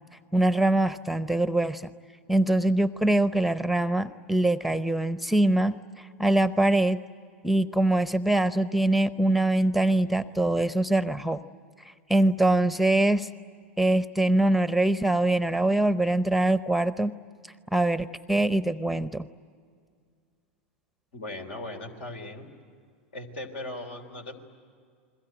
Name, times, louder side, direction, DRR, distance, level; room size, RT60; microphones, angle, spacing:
voice 1, 0.3-1.9 2.3-7.0 7.4-11.4 11.8-13.3 13.8-17.1 17.7-19.3, right 1 dB, ahead, 14 dB, 0.7 m, -23 dB
voice 2, 21.1-22.5 23.1-24.4, left 2 dB, 75° left, 5 dB, 3.5 m, -38 dB
29.0 x 22.0 x 9.0 m, 2.1 s
hypercardioid pair, 95°, 7 cm